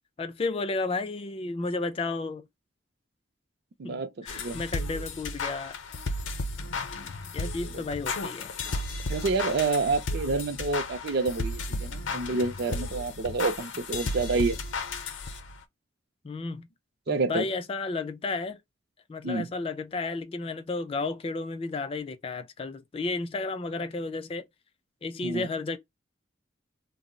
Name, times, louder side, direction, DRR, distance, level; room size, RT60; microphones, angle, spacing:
voice 1, 0.2-2.5 3.8-5.8 7.3-8.5 16.2-16.7 17.1-18.6 19.1-24.4 25.0-25.8, left 3 dB, 30° left, 0.3 m, -32 dB
voice 2, 3.8-4.6 7.7-7.8 9.1-14.6 17.1-17.4 19.2-19.5 25.2-25.5, right 3 dB, 55° right, 0.4 m, -28 dB
sound 1, 4.3-15.6, left 2 dB, 75° left, 0.5 m, -34 dB
2.2 x 2.0 x 3.7 m
head